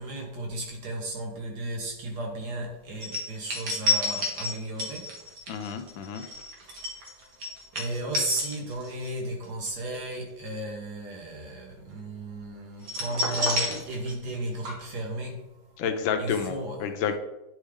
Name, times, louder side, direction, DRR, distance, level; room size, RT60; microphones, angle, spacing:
voice 1, 0.0-5.7 6.6-15.8 16.2-16.9, right 1 dB, 60° right, 1.7 m, -35 dB
sound 1, 3.0-9.1 9.4-9.7 12.8-14.4 14.6-14.7, left 1 dB, 80° right, 2.2 m, -30 dB
voice 2, 5.5-6.2 15.8-16.5 16.8-17.2, left 7 dB, 85° left, 1.4 m, -29 dB
9.9 x 3.3 x 3.6 m
omnidirectional pair, 2.1 m